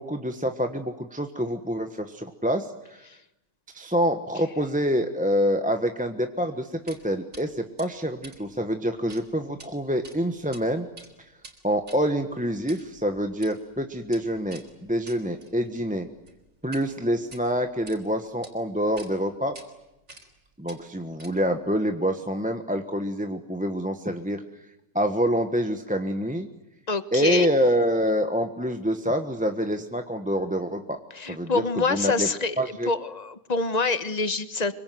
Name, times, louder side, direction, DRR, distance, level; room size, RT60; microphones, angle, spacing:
voice 1, 0.0-3.1 3.7-10.9 11.6-16.1 16.6-19.5 20.6-24.4 24.9-26.5 27.1-31.0 31.3-31.6 31.9-32.3 32.6-32.9, equal, 5° right, 6 dB, 1.1 m, -26 dB
sound 1, 6.9-7.0 7.3-7.4 7.8-9.2 9.5-9.7 10.0-10.6 10.9-16.9 17.2-18.0 18.4-18.5 19.0-19.1 19.5-19.7 20.1-20.4 20.7-21.6, right 2 dB, 65° right, 4.5 m, -48 dB
voice 2, 26.9-27.5 31.1-34.7, left 3 dB, 30° left, 12 dB, 1.3 m, -26 dB
25.5 x 24.0 x 9.4 m, 0.94 s
omnidirectional pair, 1.5 m